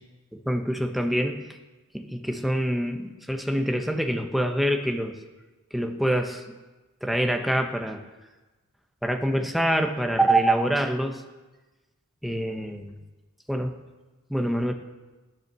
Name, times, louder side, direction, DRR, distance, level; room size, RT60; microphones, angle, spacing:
voice 1, 0.3-1.5 1.9-5.2 5.7-6.6 7.0-8.0 9.0-11.2 12.2-13.0 13.5-13.8 14.3-14.7, right 1 dB, ahead, 3 dB, 1.1 m, -25 dB
15.5 x 11.0 x 6.9 m, 1.2 s
head